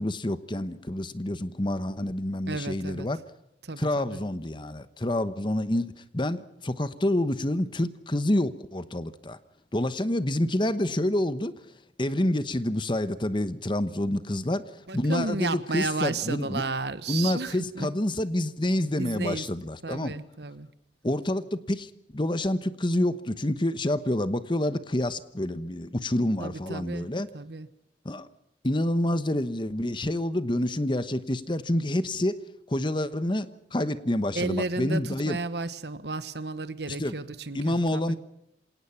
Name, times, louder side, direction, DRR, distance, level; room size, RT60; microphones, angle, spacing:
voice 1, 0.0-3.2 3.8-9.4 9.7-11.5 12.0-16.6 17.1-20.1 21.0-27.3 28.0-28.3 28.6-32.4 32.7-35.4 37.0-37.1 37.5-38.2, left 1 dB, 25° left, 12 dB, 1.1 m, -28 dB
voice 2, 2.5-3.1 3.6-4.2 14.9-17.9 18.9-19.4 19.8-20.7 26.4-27.1 27.3-27.7 34.3-38.2, right 3 dB, 65° right, 13 dB, 1.3 m, -33 dB
26.5 x 18.5 x 5.8 m, 0.77 s
head